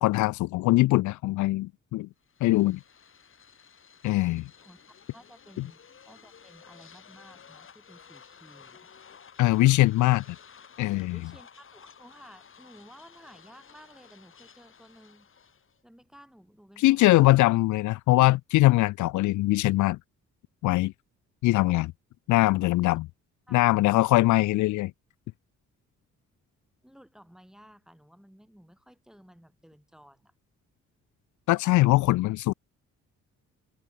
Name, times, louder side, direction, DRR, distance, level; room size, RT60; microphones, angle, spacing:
voice 1, 0.0-2.1 2.4-2.8 4.0-4.5 9.4-10.4 10.8-11.2 16.8-20.0 20.6-20.9 21.4-21.9 22.3-23.1 23.5-24.9 31.5-32.5, left 18 dB, 80° left, 0.5 m, -22 dB
sound 1, 2.2-15.8, left 7 dB, 45° left, 3.1 m, -54 dB
voice 2, 5.1-5.8 6.0-8.9 10.9-15.3 15.8-17.0 22.9-23.0 23.5-23.6 26.8-30.3 32.0-32.2, equal, ahead, 4.8 m, -54 dB
cardioid pair, 90°, 30 cm